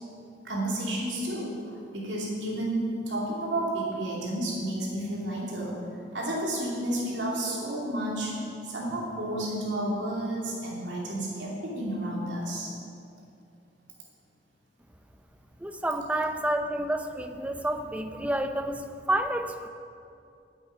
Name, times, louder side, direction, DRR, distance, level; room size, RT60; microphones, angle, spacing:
voice 1, 0.4-5.8 6.1-8.4 8.6-12.7, right 1 dB, 80° right, -4 dB, 2.7 m, -31 dB
voice 2, 15.6-19.7, right 1 dB, 5° right, 7 dB, 0.6 m, -29 dB
8.7 x 8.5 x 9.5 m, 2.5 s
head